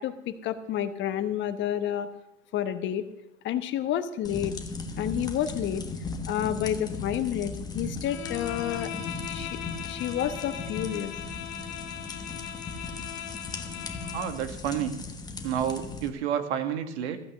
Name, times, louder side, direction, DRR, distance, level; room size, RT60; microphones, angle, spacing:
voice 1, 0.0-2.1 2.5-3.0 3.4-4.6 5.0-5.8 6.3-9.6 9.9-11.1, left 10 dB, 30° left, 11 dB, 1.0 m, -30 dB
sound 1, 4.2-16.1, left 3 dB, 10° left, 1.3 m, -37 dB
Bowed string instrument, 8.0-14.4, left 10 dB, 55° left, 1.6 m, -39 dB
voice 2, 14.1-14.9 15.4-17.2, right 9 dB, 60° right, 8 dB, 1.8 m, -30 dB
15.0 x 8.7 x 6.4 m, 0.89 s
hypercardioid pair, 110°, 38 cm